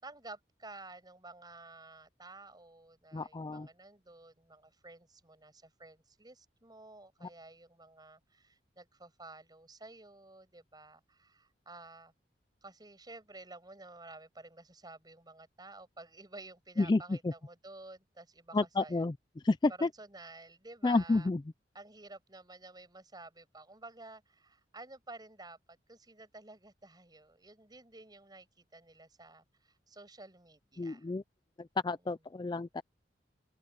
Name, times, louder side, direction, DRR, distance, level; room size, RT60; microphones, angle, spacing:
voice 1, 0.0-12.1 12.6-19.1 19.8-21.3 21.7-31.1, right 2 dB, 25° right, 6.2 m, -52 dB
voice 2, 3.1-3.7 7.2-7.3 16.8-17.3 18.5-19.1 19.4-19.9 20.8-21.4 30.8-31.2 31.6-32.8, left 3 dB, 25° left, 0.4 m, -30 dB
open air
head